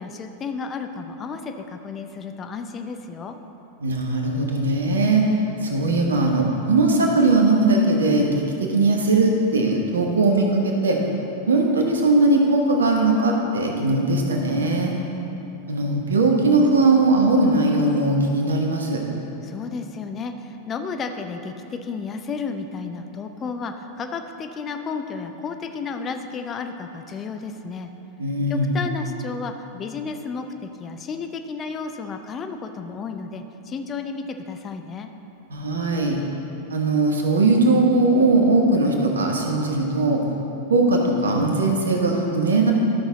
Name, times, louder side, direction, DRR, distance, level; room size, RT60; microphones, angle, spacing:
voice 1, 0.0-3.4 19.4-27.9 28.5-35.1, left 5 dB, 25° left, 6 dB, 0.5 m, -32 dB
voice 2, 3.8-5.2 5.6-11.0 11.5-14.9 15.7-19.0 28.2-28.8 35.5-36.2 36.7-40.2 40.7-42.7, right 2 dB, 70° right, 1 dB, 1.1 m, -19 dB
12.5 x 6.2 x 4.0 m, 3.0 s
figure-of-eight pair, 90°, 0 cm